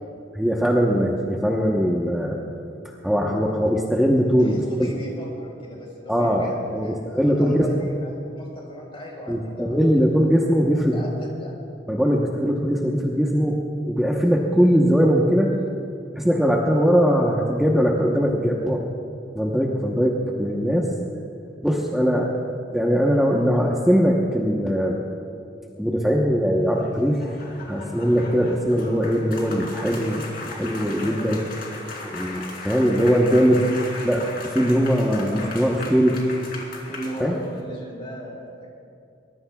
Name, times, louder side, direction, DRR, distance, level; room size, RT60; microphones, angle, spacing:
voice 1, 0.3-2.4 3.0-4.9 6.1-6.5 6.7-7.9 9.3-11.0 11.9-15.5 16.2-18.8 19.3-20.9 21.6-22.3 22.7-25.0 25.8-27.2 27.6-31.4 32.1-33.6 34.0-36.2 37.2-37.3, equal, ahead, -2 dB, 1.0 m, -21 dB
voice 2, 4.4-10.0 10.7-11.5 23.3-23.4 36.9-38.7, equal, 30° left, -2 dB, 4.5 m, -38 dB
sound 1, 26.6-37.6, left 3 dB, 55° left, 3.4 m, -37 dB
23.5 x 20.5 x 2.4 m, 2.5 s
head